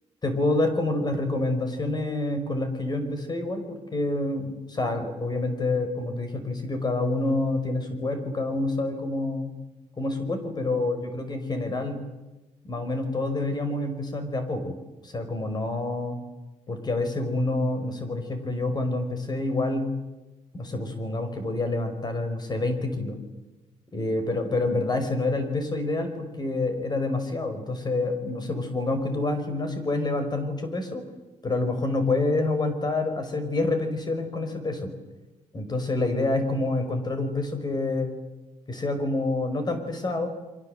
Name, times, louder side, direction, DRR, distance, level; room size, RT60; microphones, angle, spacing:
voice 1, 0.2-9.5 10.0-12.0 12.6-14.8 15.0-16.2 16.7-19.9 20.5-23.2 23.9-31.0 31.4-34.9 35.5-38.1 38.7-40.3, left 2 dB, 35° left, 7 dB, 5.2 m, -27 dB
29.0 x 24.5 x 8.0 m, 1.1 s
cardioid pair, 120°, 13 cm